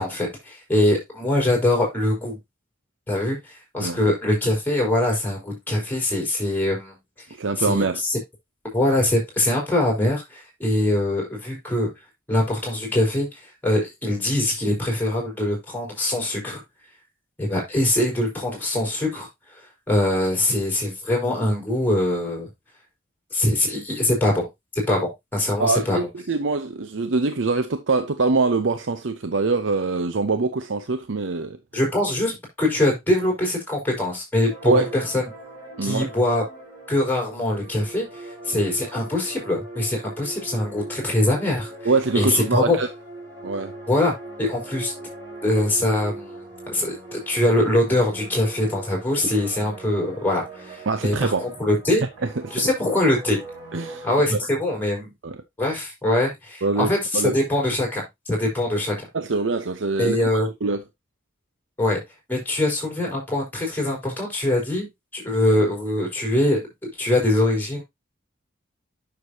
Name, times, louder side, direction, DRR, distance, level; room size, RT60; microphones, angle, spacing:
voice 1, 0.0-2.4 3.1-7.0 7.7-7.8 8.1-8.2 8.7-11.9 12.3-13.3 13.6-16.6 17.4-19.3 19.9-22.5 23.3-24.5 24.9-26.0 31.7-35.3 35.8-36.4 36.9-41.7 42.1-42.8 43.9-44.1 44.4-44.9 45.4-46.4 46.7-52.1 52.5-53.4 54.0-55.1 55.6-59.1 60.0-60.5 61.8-62.0 62.3-64.9 65.1-67.8, left 1 dB, 10° left, 5.3 m, -23 dB
voice 2, 7.4-8.0 25.6-31.6 34.6-35.0 35.8-36.1 41.8-42.9 43.4-43.7 50.9-51.4 52.2-52.7 53.7-54.4 55.2-55.4 56.6-57.4 59.1-60.8, right 3 dB, 85° right, 0.7 m, -24 dB
sound 1, 34.5-54.1, right 2 dB, 20° right, 5.3 m, -40 dB
9.5 x 6.8 x 2.8 m
head